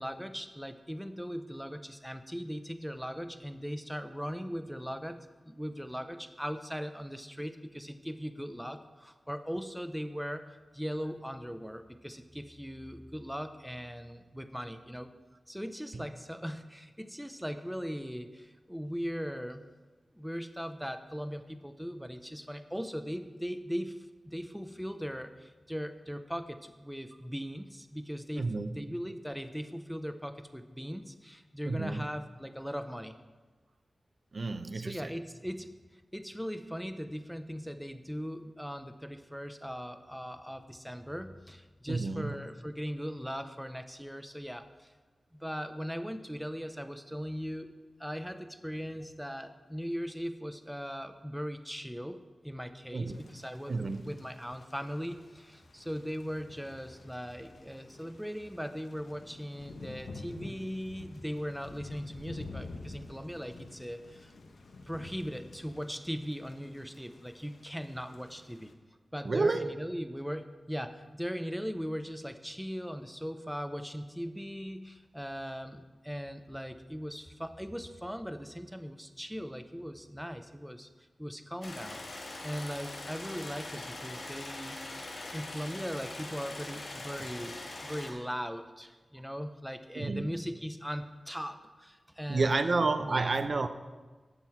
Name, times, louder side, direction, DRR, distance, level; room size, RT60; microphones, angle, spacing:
voice 1, 0.0-15.1 15.5-19.7 20.1-28.5 28.7-33.2 34.7-44.9 45.3-47.7 48.0-64.3 64.8-68.7 69.1-80.9 81.2-82.0 82.4-84.8 85.3-92.7 93.0-93.3, equal, ahead, 9 dB, 0.6 m, -39 dB
voice 2, 28.3-28.8 31.6-32.0 34.3-35.1 41.9-42.3 52.9-53.3 53.7-54.0 69.2-69.8 89.9-90.4 92.3-93.7, right 3 dB, 50° right, 9 dB, 0.5 m, -30 dB
Thunder / Rain, 53.1-68.7, left 3 dB, 80° left, 1.0 m, -49 dB
sound 1, 81.6-88.1, left 2 dB, 65° left, 3.3 m, -42 dB
12.5 x 7.9 x 4.5 m, 1.3 s
wide cardioid pair, 110°, 0 cm